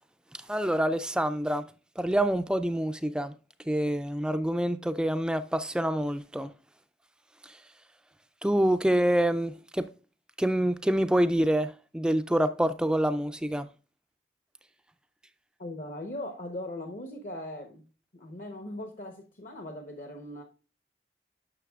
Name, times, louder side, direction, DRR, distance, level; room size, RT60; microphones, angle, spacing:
voice 1, 0.5-1.6 2.0-3.3 3.7-6.5 7.4-7.6 8.4-9.9 10.4-13.7, right 1 dB, 5° right, 0.3 m, -26 dB
voice 2, 15.6-17.8 18.1-20.4, left 1 dB, 50° left, 0.9 m, -39 dB
10.0 x 6.2 x 2.4 m
head